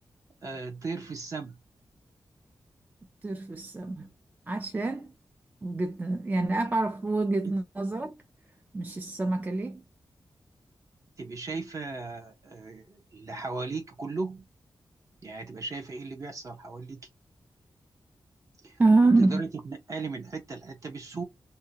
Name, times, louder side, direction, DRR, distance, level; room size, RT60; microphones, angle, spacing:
voice 1, 0.4-1.5 7.4-7.6 11.2-14.5 15.2-17.0 18.6-18.8 19.2-21.2, right 3 dB, 40° right, 0.8 m, -37 dB
voice 2, 3.2-4.1 4.5-5.1 5.6-8.1 8.7-9.8 18.8-19.4, right 3 dB, 20° right, 0.3 m, -26 dB
2.7 x 2.3 x 2.7 m
wide cardioid pair, 170°, 8 cm